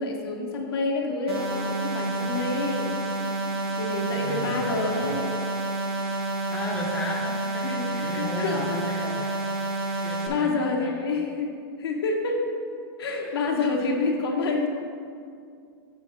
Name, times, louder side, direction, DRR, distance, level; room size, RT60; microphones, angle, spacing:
voice 1, 0.0-3.0 3.7-5.4 7.6-9.0 9.9-11.5 11.8-12.4 13.0-14.7, left 3 dB, 85° left, 0 dB, 1.3 m, -28 dB
sound 1, 1.3-10.3, right 2 dB, 80° right, 1.3 m, -29 dB
voice 2, 4.1-5.2 6.5-7.6 8.0-9.3 10.0-10.9 13.2-13.4, left 2 dB, 10° left, -3 dB, 1.2 m, -35 dB
8.1 x 4.6 x 5.0 m, 2.3 s
hypercardioid pair, 145°, 13 cm